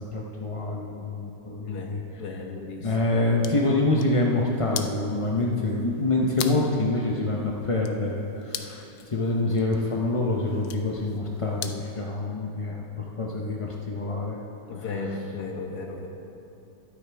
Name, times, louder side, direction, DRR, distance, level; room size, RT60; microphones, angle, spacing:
voice 1, 0.0-2.0 2.8-14.4 14.7-14.8, left 2 dB, 45° left, -2 dB, 0.4 m, -26 dB
voice 2, 1.7-3.0 14.7-16.1, left 3 dB, 60° left, 2 dB, 1.6 m, -35 dB
sound 1, 3.1-12.0, left 9 dB, 90° left, 1.4 m, -42 dB
22.0 x 8.6 x 3.4 m, 3.0 s
omnidirectional pair, 2.0 m